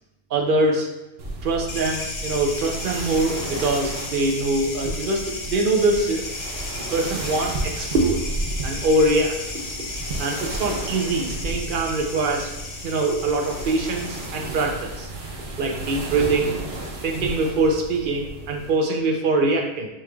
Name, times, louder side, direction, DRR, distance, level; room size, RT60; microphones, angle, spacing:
voice 1, 0.3-0.9 1.4-6.2 6.9-8.2 8.6-9.4 10.2-12.5 12.8-15.1 15.6-16.6 17.0-19.9, right 2 dB, 90° right, 0 dB, 0.4 m, -23 dB
sound 1, 1.2-18.8, right 2 dB, 50° right, 0.8 m, -33 dB
sound 2, 1.7-14.3, left 3 dB, 55° left, 1.1 m, -35 dB
7.3 x 3.0 x 2.3 m, 0.99 s
omnidirectional pair, 1.7 m